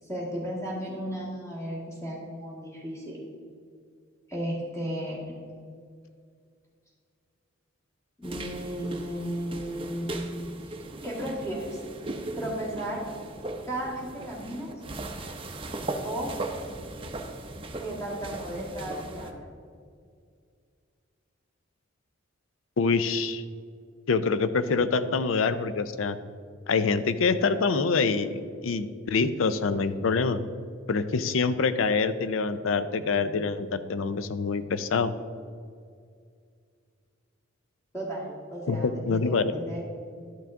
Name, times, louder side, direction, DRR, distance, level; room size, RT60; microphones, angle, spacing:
voice 1, 0.1-3.3 4.3-5.2 8.2-10.2 10.7-10.8 11.0-11.8 12.4-13.0 13.7-14.7 16.0-16.3 17.8-19.5 37.9-39.8, right 1 dB, 15° left, -5 dB, 1.7 m, -34 dB
sound 1, 8.2-19.3, right 2 dB, 25° right, 0.6 m, -38 dB
voice 2, 22.8-23.4 24.1-26.2 26.7-30.4 30.9-35.1 38.7-39.5, left 4 dB, 75° left, 12 dB, 0.5 m, -25 dB
12.0 x 5.9 x 3.7 m, 2.2 s
head